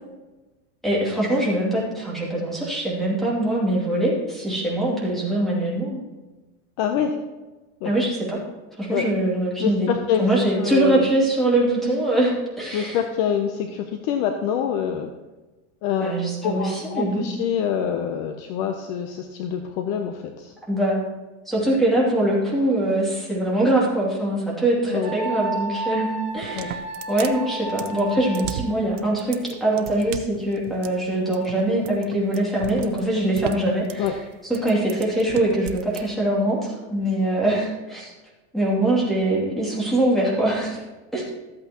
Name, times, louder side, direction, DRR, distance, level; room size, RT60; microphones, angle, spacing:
voice 1, 0.8-6.0 7.8-8.4 8.8-9.9 10.2-13.0 16.0-17.4 20.7-21.0 21.5-34.1 34.4-38.1 38.5-40.8 41.1-41.2, right 1 dB, ahead, -6 dB, 2.6 m, -23 dB
voice 2, 6.8-7.2 7.8-7.9 8.9-9.0 9.6-10.3 10.6-11.1 12.7-15.1 15.8-16.1 16.4-20.5 24.9-25.1 26.5-26.7 34.0-34.1, left 8 dB, 40° left, 5 dB, 0.7 m, -25 dB
Wind instrument woodwind instrument, 25.0-28.8, right 3 dB, 35° right, 2.6 m, -32 dB
sound 1, 26.3-36.0, right 10 dB, 85° right, 0.8 m, -36 dB
13.5 x 8.2 x 2.9 m, 1.2 s
supercardioid pair, 160°, 36 cm